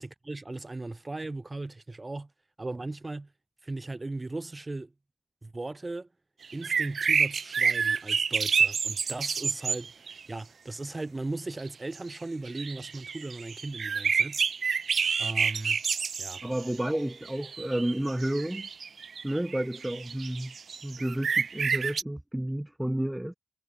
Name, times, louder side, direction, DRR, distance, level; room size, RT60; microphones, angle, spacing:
voice 1, 0.0-2.3 2.6-3.3 3.6-4.9 5.4-6.1 6.5-14.4 15.2-15.8 16.2-16.4, right 2 dB, 30° right, 5.0 m, -37 dB
sound 1, 6.4-10.2 11.6-11.7 11.9-12.1 12.5-16.7 17.2-22.0, right 6 dB, 60° right, 1.9 m, -29 dB
voice 2, 16.4-18.7 19.2-20.5 20.8-23.4, right 1 dB, 10° right, 2.7 m, -31 dB
supercardioid pair, 45°, 0 cm